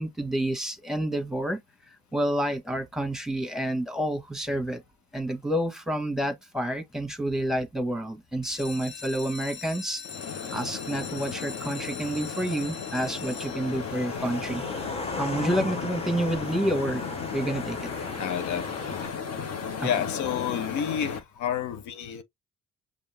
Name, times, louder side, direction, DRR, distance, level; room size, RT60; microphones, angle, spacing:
voice 1, 0.0-1.6 2.1-4.8 5.1-10.0 10.5-14.6 15.2-17.0 17.3-17.9 19.8-19.9, right 1 dB, ahead, 1.4 m, -29 dB
sound 1, 8.3-14.0 14.7-15.1 15.5-15.6 15.9-16.0 16.4-16.5, left 6 dB, 40° left, 0.7 m, -42 dB
sound 2, 10.0-21.2, left 6 dB, 60° left, 1.2 m, -35 dB
sound 3, 10.9-19.1, left 2 dB, 20° left, 1.1 m, -39 dB
voice 2, 18.2-19.3 19.8-22.2, left 9 dB, 80° left, 0.7 m, -31 dB
5.4 x 2.6 x 3.3 m
supercardioid pair, 65°, 29 cm